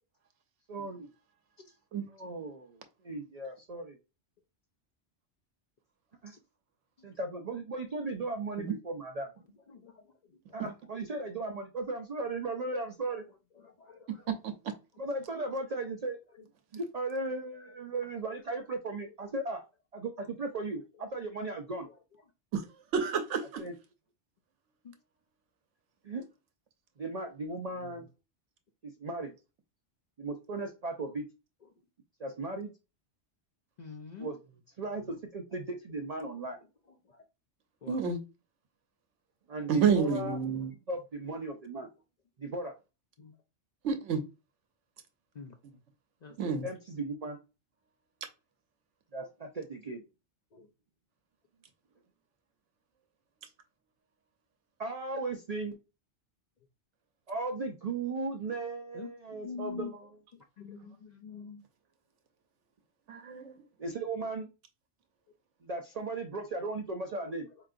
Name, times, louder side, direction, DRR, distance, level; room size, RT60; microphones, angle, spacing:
voice 1, 0.7-1.1 2.1-4.0 6.2-6.3 7.0-9.3 10.5-13.3 15.0-16.5 16.7-19.6 19.9-21.9 23.6-23.7 26.0-26.2 27.0-28.1 28.8-29.3 30.2-31.2 32.2-32.7 34.2-34.4 34.8-36.6 39.5-40.4 40.9-41.9 42.4-42.7 46.4-47.4 49.1-50.0 54.8-55.8 57.3-60.2 63.8-64.5 65.6-67.5, right 3 dB, 50° right, 0.5 m, -36 dB
voice 2, 13.8-14.2 27.8-27.9 33.8-34.3 37.8-38.0 43.2-43.3 45.4-45.5 46.2-46.7 50.5-50.7 58.9-59.1 59.4-59.9 60.6-60.9 61.2-61.6, left 5 dB, 55° left, 0.5 m, -44 dB
voice 3, 22.9-23.6 37.9-38.2 39.7-40.7 43.8-44.2 46.4-46.6 63.1-63.5, right 6 dB, 85° right, 1.0 m, -29 dB
4.5 x 2.9 x 2.5 m
omnidirectional pair, 1.2 m